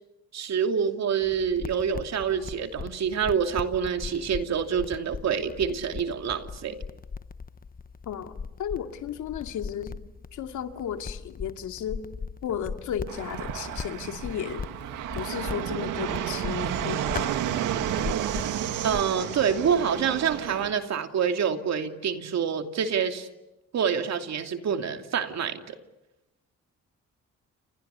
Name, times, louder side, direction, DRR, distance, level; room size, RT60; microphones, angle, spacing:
voice 1, 0.3-6.8 18.8-23.3 23.7-25.8, right 7 dB, 60° right, 6 dB, 2.8 m, -27 dB
sound 1, 1.2-19.1, left 5 dB, 30° left, 1.0 m, -39 dB
voice 2, 8.1-10.0 10.3-12.0 12.4-14.7 15.1-17.3, left 9 dB, 75° left, 6 dB, 2.5 m, -34 dB
Fixed-wing aircraft airplane, 13.1-20.7, right 11 dB, 85° right, 2.0 m, -31 dB
30.0 x 28.5 x 7.0 m, 0.97 s
cardioid pair, 90°, 30 cm